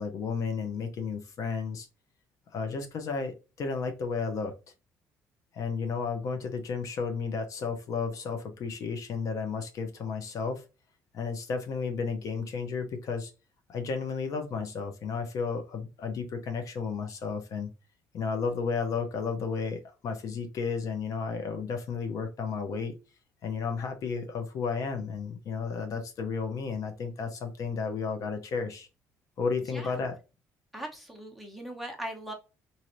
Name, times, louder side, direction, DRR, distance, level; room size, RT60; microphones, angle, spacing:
voice 1, 0.0-1.9 2.5-4.5 5.5-10.6 11.1-13.3 13.7-17.7 18.1-22.9 23.4-28.9 29.4-30.2, left 5 dB, 55° left, 6 dB, 0.7 m, -33 dB
voice 2, 29.7-30.0 30.7-32.3, right 1 dB, ahead, 1 dB, 0.9 m, -39 dB
3.1 x 2.7 x 2.5 m, 0.30 s
cardioid pair, 125°, 7 cm